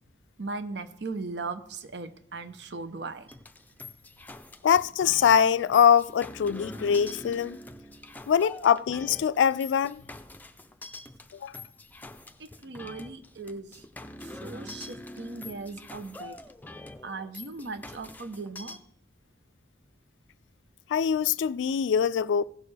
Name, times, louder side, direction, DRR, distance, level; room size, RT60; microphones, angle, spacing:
voice 1, 0.4-3.3 12.4-13.8 14.2-16.4 17.0-18.8, right 3 dB, 70° right, 0.8 m, -38 dB
sound 1, 3.3-18.8, left 2 dB, 10° left, 0.5 m, -44 dB
voice 2, 4.6-7.6 8.3-10.0 11.3-11.6 20.9-22.4, left 8 dB, 90° left, 0.3 m, -23 dB
16.0 x 6.6 x 3.3 m
head